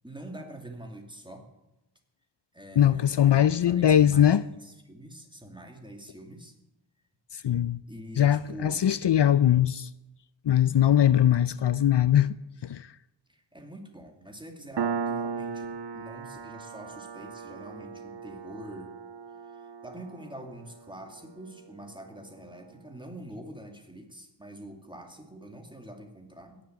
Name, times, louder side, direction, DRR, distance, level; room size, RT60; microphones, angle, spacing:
voice 1, 0.0-1.5 2.5-6.6 7.9-8.8 13.3-18.9 19.5-26.6, right 1 dB, 10° right, 2.6 m, -45 dB
voice 2, 2.8-4.4 7.3-7.8 8.2-9.9 10.4-12.3 12.6-12.9, left 10 dB, 70° left, 0.5 m, -21 dB
Piano, 14.8-21.9, right 6 dB, 65° right, 0.6 m, -37 dB
17.5 x 7.3 x 9.3 m
wide cardioid pair, 50°, 44 cm